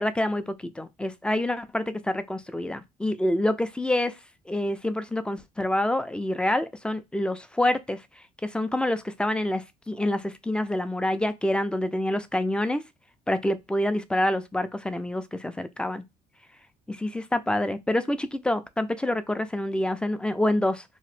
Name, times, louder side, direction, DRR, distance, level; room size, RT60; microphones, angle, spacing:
voice 1, 0.0-4.2 4.5-12.8 13.3-16.0 16.9-20.8, left 1 dB, 5° left, 0.3 m, -27 dB
2.8 x 2.1 x 3.1 m
cardioid pair, 110°, 17 cm